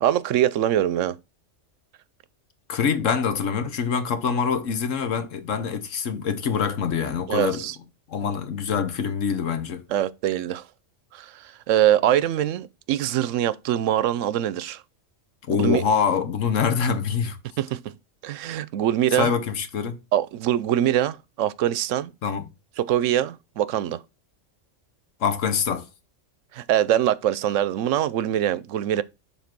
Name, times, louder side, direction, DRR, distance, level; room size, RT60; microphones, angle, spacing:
voice 1, 0.0-1.2 7.3-7.8 9.9-10.6 11.1-14.8 15.6-15.8 17.6-17.9 18.2-19.3 20.1-22.1 22.8-24.0 26.5-29.0, right 11 dB, 85° right, 1.0 m, -23 dB
voice 2, 2.7-7.6 8.1-9.8 15.5-17.4 19.1-20.0 22.2-22.5 25.2-25.9, left 6 dB, 85° left, 1.4 m, -25 dB
7.2 x 3.9 x 6.0 m
omnidirectional pair, 1.3 m